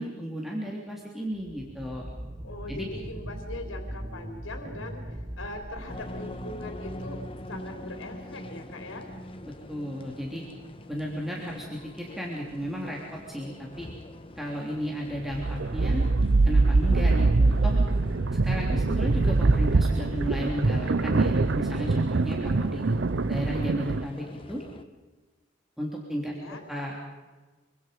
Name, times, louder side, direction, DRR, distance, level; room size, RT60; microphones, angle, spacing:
voice 1, 0.0-2.1 2.7-2.8 9.4-10.4 10.9-13.9 14.4-16.1 16.4-17.7 18.3-22.8 23.3-24.6 25.8-26.3 26.7-27.1, equal, ahead, -3 dB, 3.3 m, -34 dB
sound 1, 1.3-7.8, right 1 dB, 30° right, 1.2 m, -41 dB
voice 2, 2.4-7.2 7.5-9.1 26.2-26.6, left 2 dB, 90° left, 3 dB, 3.8 m, -41 dB
sound 2, 5.9-24.8, left 1 dB, 30° left, 1.3 m, -44 dB
sound 3, 15.2-24.1, right 3 dB, 65° right, 0.7 m, -23 dB
26.0 x 25.0 x 5.3 m, 1.2 s
head